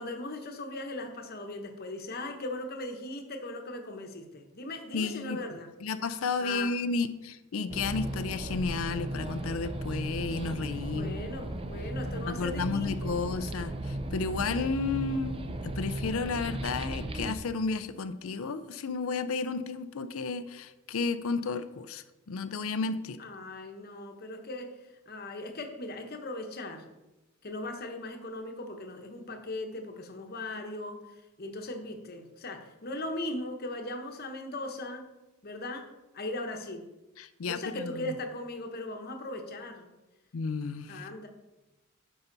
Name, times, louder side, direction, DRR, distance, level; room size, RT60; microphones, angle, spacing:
voice 1, 0.0-5.7 6.4-6.7 10.8-13.1 23.2-26.9 27.4-31.1 31.4-35.1 35.4-35.9 36.1-36.8 37.5-39.8 40.9-41.3, left 2 dB, 45° left, 5 dB, 1.0 m, -38 dB
voice 2, 4.9-5.4 5.8-11.2 12.3-23.2 37.2-38.1 40.3-41.1, left 4 dB, 70° left, 11 dB, 0.5 m, -32 dB
sound 1, 7.7-17.3, right 1 dB, 25° right, 0.5 m, -36 dB
9.7 x 5.8 x 3.9 m, 1.0 s
head